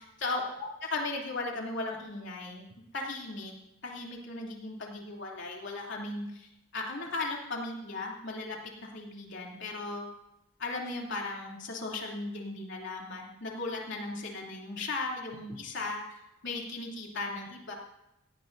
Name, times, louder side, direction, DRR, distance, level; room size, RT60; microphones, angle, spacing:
voice 1, 0.0-3.5 3.8-8.6 8.9-10.0 10.6-17.7, left 3 dB, 60° left, -1 dB, 3.1 m, -37 dB
17.5 x 17.5 x 2.7 m, 0.86 s
head